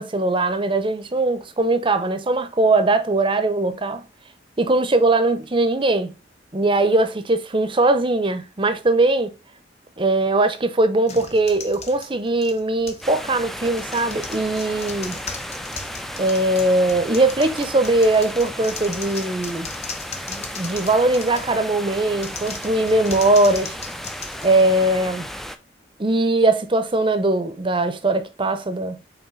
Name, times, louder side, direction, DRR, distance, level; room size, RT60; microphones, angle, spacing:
voice 1, 0.0-4.1 4.6-6.1 6.5-9.3 10.0-15.2 16.2-19.7 20.3-23.8 24.4-25.3 26.0-29.0, right 2 dB, 25° right, 0.7 m, -20 dB
sound 1, 11.1-13.1 13.7-21.6 22.1-25.1, left 5 dB, 35° left, 0.9 m, -38 dB
sound 2, 13.0-25.6, equal, ahead, 0.4 m, -34 dB
5.7 x 4.2 x 4.0 m
head